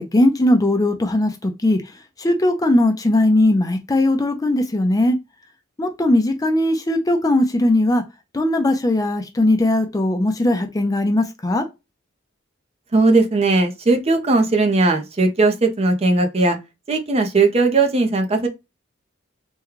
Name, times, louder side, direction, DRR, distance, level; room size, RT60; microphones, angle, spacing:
voice 1, 0.0-1.8 2.2-5.2 5.8-8.0 8.3-11.6, left 1 dB, 20° left, 0.4 m, -19 dB
voice 2, 12.9-16.6 16.9-18.5, right 3 dB, 30° right, 0.6 m, -18 dB
3.5 x 2.2 x 3.0 m
head